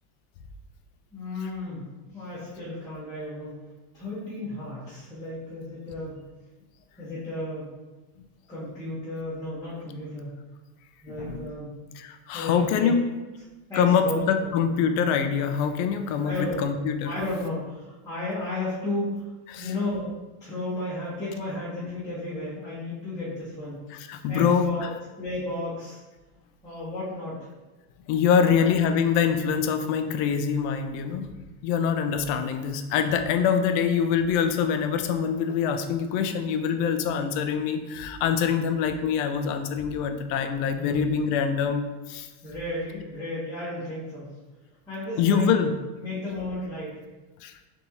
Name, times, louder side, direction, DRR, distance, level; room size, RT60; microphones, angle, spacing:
voice 1, 1.1-1.8 2.1-3.7 3.9-6.2 7.0-7.7 8.5-10.3 11.0-11.8 12.3-12.9 13.7-14.2 16.2-16.7 17.0-20.1 20.4-23.8 24.3-24.9 25.2-26.0 26.6-27.4 28.3-28.7 32.2-32.5 40.7-41.1 42.4-44.3 44.9-45.5 46.0-47.0, left 2 dB, 5° left, -14 dB, 1.0 m, -33 dB
voice 2, 11.1-11.5 12.0-13.0 13.7-17.1 19.5-19.7 23.9-24.9 28.1-31.3 31.6-42.3 45.2-45.7 47.4-47.5, left 7 dB, 55° left, 8 dB, 0.5 m, -24 dB
4.1 x 3.5 x 2.8 m, 1.2 s
supercardioid pair, 150°, 46 cm